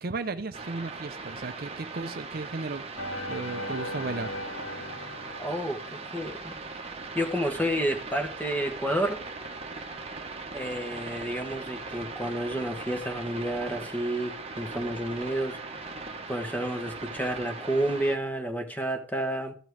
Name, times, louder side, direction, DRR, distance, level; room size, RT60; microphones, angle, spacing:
voice 1, 0.0-2.9 3.3-4.3, right 3 dB, 50° right, 0.6 m, -35 dB
Radio Static Short Wave choppy, 0.5-18.2, right 3 dB, 30° right, 1.2 m, -39 dB
sound 1, 3.0-6.5, left 1 dB, 80° left, 1.6 m, -38 dB
voice 2, 5.4-6.5 7.1-9.2 10.5-15.6 16.3-19.5, right 1 dB, 10° left, 1.5 m, -30 dB
14.0 x 6.0 x 4.8 m
head